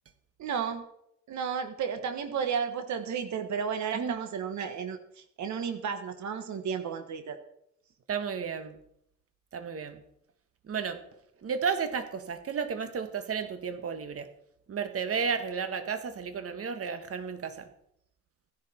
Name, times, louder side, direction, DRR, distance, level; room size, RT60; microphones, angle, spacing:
voice 1, 0.4-0.8 1.3-7.4, right 6 dB, 70° right, 9 dB, 1.4 m, -33 dB
voice 2, 8.1-8.8 9.5-10.0 10.7-11.0 11.4-14.3 14.7-17.7, right 6 dB, 50° right, 9 dB, 1.5 m, -33 dB
15.5 x 10.5 x 4.4 m, 0.75 s
cardioid pair, 90°, 30 cm